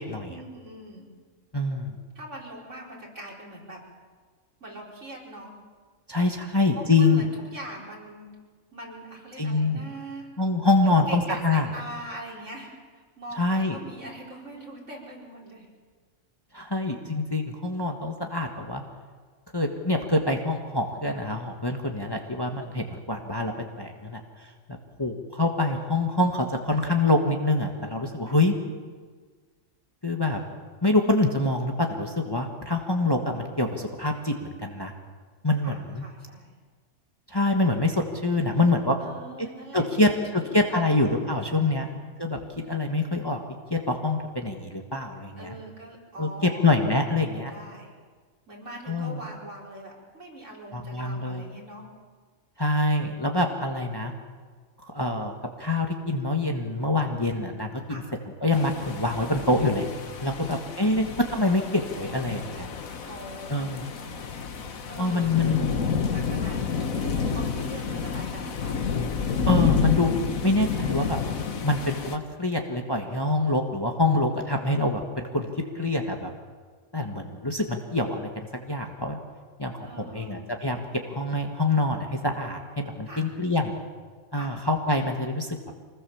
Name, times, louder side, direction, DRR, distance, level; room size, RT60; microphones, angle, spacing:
voice 1, 0.2-1.1 2.2-3.8 4.6-5.6 6.5-8.3 8.7-10.3 10.8-15.7 28.3-28.4 35.6-36.5 39.0-40.0 40.3-42.0 45.4-47.9 48.5-51.9 57.9-58.1 60.3-61.0 63.0-63.7 64.9-65.7 66.1-69.0 79.8-80.5 80.9-81.2 83.1-83.3 84.3-84.6, right 1 dB, 60° right, -3 dB, 5.3 m, -42 dB
voice 2, 1.5-1.9 6.1-7.2 9.4-9.8 10.4-11.7 13.4-13.8 16.5-18.8 19.5-23.5 23.8-24.2 25.0-28.5 30.0-30.4 30.8-34.9 35.4-36.0 37.3-39.0 39.7-41.8 42.2-42.4 42.7-43.4 43.7-45.5 46.2-47.5 48.9-49.2 50.7-51.4 52.6-54.1 54.8-58.0 58.4-59.9 60.2-61.0 61.3-62.7 63.5-63.8 65.0-65.7 69.4-70.1 70.4-71.2 71.6-76.3 76.9-78.3 78.6-79.2 79.6-83.7 84.3-85.5, left 2 dB, 20° left, 3 dB, 1.6 m, -25 dB
sound 1, 58.5-72.2, left 5 dB, 80° left, 1.7 m, -30 dB
25.0 x 20.0 x 7.2 m, 1.5 s
omnidirectional pair, 1.4 m